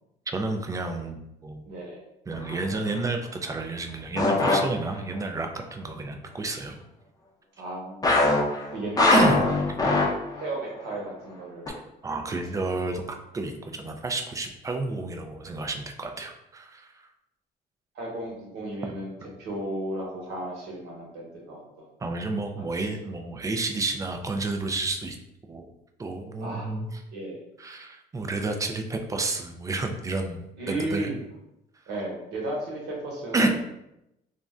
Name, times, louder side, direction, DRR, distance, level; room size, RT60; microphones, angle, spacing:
voice 1, 0.3-1.6 2.3-6.8 8.1-8.2 9.1-9.4 9.7-9.8 11.7-17.1 22.0-25.2 25.5-25.7 26.0-27.0 27.6-31.1 33.3-33.5, right 3 dB, 20° right, 4 dB, 0.4 m, -30 dB
voice 2, 1.7-2.0 7.6-8.0 8.7-9.5 10.3-11.8 17.9-19.1 19.4-21.8 26.4-26.7 27.1-27.4 30.6-31.2 31.9-33.5, right 1 dB, 80° right, -3 dB, 1.0 m, -34 dB
sound 1, 2.3-2.7 4.2-5.2 8.0-10.5 10.8-11.0 11.7-11.8, left 2 dB, 20° left, 0.6 m, -22 dB
2.5 x 2.1 x 3.5 m, 0.86 s
cardioid pair, 110°, 17 cm